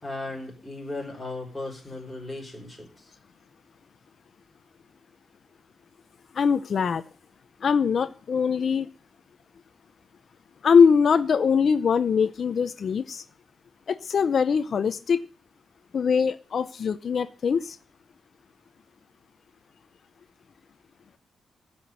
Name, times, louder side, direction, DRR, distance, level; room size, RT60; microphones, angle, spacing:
voice 1, 0.0-3.1, left 2 dB, 5° left, -2 dB, 5.4 m, -36 dB
voice 2, 6.3-7.0 7.6-8.9 10.6-13.2 13.9-15.3 15.9-17.8, left 6 dB, 45° left, 12 dB, 0.7 m, -22 dB
15.5 x 6.1 x 10.0 m, 0.38 s
wide cardioid pair, 175°, 0 cm